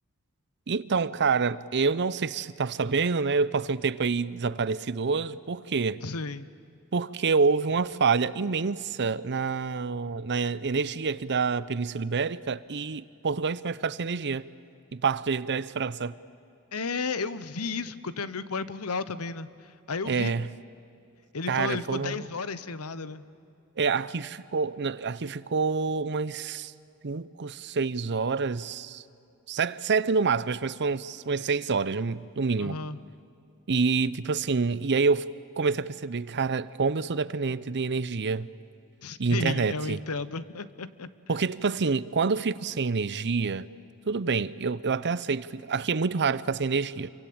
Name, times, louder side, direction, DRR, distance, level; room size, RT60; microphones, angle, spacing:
voice 1, 0.7-6.0 6.9-14.4 14.9-16.2 20.1-20.5 21.5-22.3 23.8-26.7 27.0-29.0 29.5-32.8 33.7-35.3 35.6-38.5 39.2-40.0 41.3-43.7 44.1-47.1, right 4 dB, 50° right, 0.7 m, -27 dB
voice 2, 6.0-6.5 16.7-20.3 21.3-23.2 32.6-33.0 39.0-41.1, left 4 dB, 70° left, 1.0 m, -33 dB
28.0 x 24.0 x 8.7 m
head